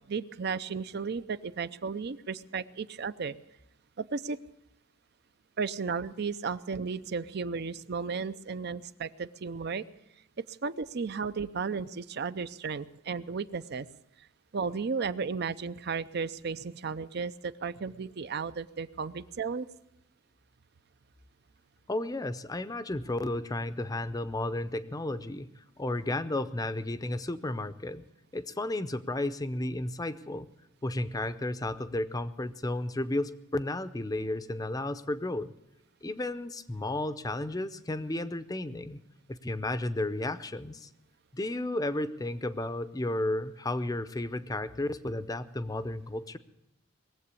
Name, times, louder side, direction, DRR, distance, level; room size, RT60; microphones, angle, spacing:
voice 1, 0.1-3.4 4.0-4.4 5.6-9.8 10.6-13.9 14.5-19.7, right 5 dB, 50° right, 14 dB, 0.5 m, -34 dB
voice 2, 21.9-28.0 28.3-30.5 30.8-35.5 36.0-39.0 39.3-40.9 41.3-46.4, left 1 dB, 20° left, 12 dB, 0.6 m, -33 dB
20.5 x 7.9 x 8.3 m, 0.86 s
head